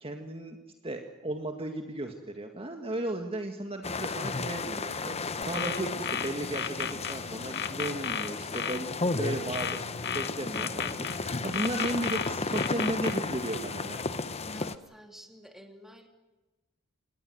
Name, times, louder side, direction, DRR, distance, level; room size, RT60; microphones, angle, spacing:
voice 1, 0.0-0.6 0.8-9.8 10.1-14.0, right 1 dB, 25° right, 4 dB, 1.9 m, -35 dB
sound 1, 3.8-14.8, left 3 dB, 30° left, 0.9 m, -34 dB
Telephone, 4.9-6.0 6.9-8.0 8.9-10.0 10.9-12.0 12.9-14.0, left 3 dB, 45° right, 5.0 m, -52 dB
sound 2, 5.4-7.2 7.5-8.8 9.5-11.2 11.5-13.2, left 8 dB, 50° left, 1.2 m, -33 dB
voice 2, 14.5-16.1, equal, ahead, 4 dB, 2.9 m, -51 dB
27.5 x 19.5 x 7.9 m, 1.1 s
head